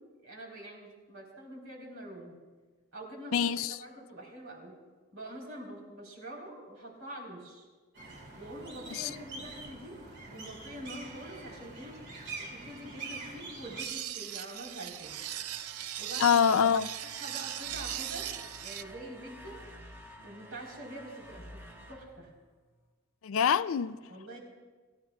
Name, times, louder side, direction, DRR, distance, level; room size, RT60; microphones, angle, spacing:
voice 1, 0.0-2.3 2.9-3.4 3.8-4.8 5.1-7.7 8.4-12.0 12.4-15.2 16.0-16.4 17.2-19.6 20.2-21.6 21.9-22.3 24.1-24.4, right 1 dB, 70° right, 3.9 m, -45 dB
voice 2, 3.3-3.8 8.9-9.1 16.2-16.9 23.2-24.0, left 7 dB, 65° left, 0.4 m, -25 dB
sound 1, 7.9-13.8, right 3 dB, 55° right, 2.9 m, -45 dB
sound 2, 13.8-18.8, right 11 dB, 90° right, 0.5 m, -39 dB
sound 3, 14.9-22.9, equal, 10° right, 1.1 m, -51 dB
25.0 x 14.5 x 2.4 m
head